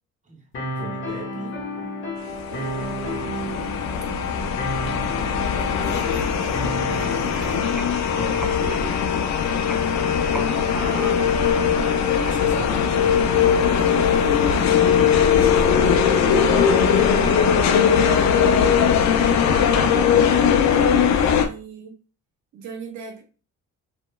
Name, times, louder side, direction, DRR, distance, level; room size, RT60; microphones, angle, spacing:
voice 1, 0.2-1.6 8.1-9.0 11.8-13.2 14.8-17.6, right 3 dB, 25° right, 0.8 m, -36 dB
sound 1, 0.5-8.6, left 1 dB, 40° left, 0.9 m, -32 dB
sound 2, 2.5-21.5, left 7 dB, 65° left, 0.4 m, -20 dB
voice 2, 2.5-3.8 5.2-7.8 10.3-11.4 13.6-14.9 19.5-21.9 22.5-23.2, right 5 dB, 70° right, 0.6 m, -38 dB
sound 3, 7.2-13.9, left 1 dB, ahead, 0.4 m, -40 dB
2.8 x 2.1 x 2.2 m
cardioid pair, 90°, 30 cm